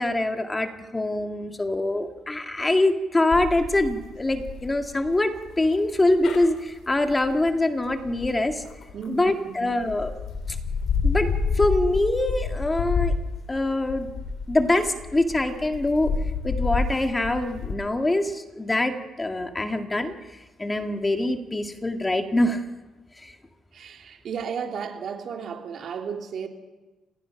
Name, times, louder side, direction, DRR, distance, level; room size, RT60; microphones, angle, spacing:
voice 1, 0.0-8.6 9.1-10.1 11.0-13.1 13.5-14.1 14.5-16.1 16.4-20.1 20.6-22.6 23.2-23.3, left 2 dB, 20° left, 2.0 m, -24 dB
sound 1, 3.3-9.3 9.8-17.7, left 4 dB, 65° left, 3.1 m, -29 dB
voice 2, 8.9-9.8 23.7-26.5, right 6 dB, 60° right, 2.8 m, -34 dB
29.0 x 17.0 x 5.9 m
cardioid pair, 90°, 0 cm